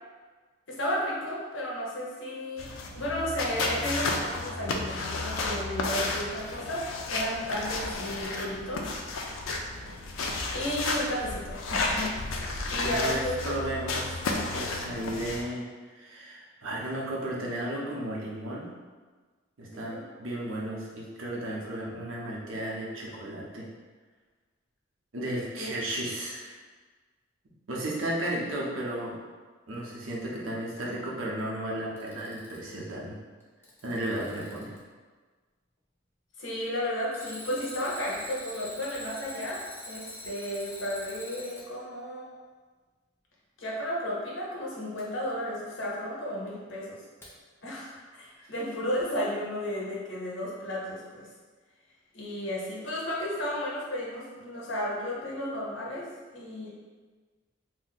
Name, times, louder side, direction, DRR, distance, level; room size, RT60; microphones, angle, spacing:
voice 1, 0.7-8.8 9.8-10.0 10.5-13.4 19.7-20.0 25.6-25.7 36.4-42.3 43.6-47.0 47.6-51.3 52.1-56.7, equal, 70° left, -4 dB, 0.8 m, -33 dB
sound 1, 2.6-15.4, left 3 dB, 90° left, 0.4 m, -32 dB
voice 2, 12.8-18.7 19.6-23.7 25.1-26.6 27.7-29.2 29.7-33.2 33.8-34.7 48.4-48.5, right 1 dB, 85° right, -4 dB, 0.7 m, -34 dB
Alarm, 31.8-32.8 33.4-34.8 37.1-41.7 45.0-45.1 47.2-47.3, left 1 dB, 10° left, 0.5 m, -44 dB
2.6 x 2.1 x 4.0 m, 1.4 s
head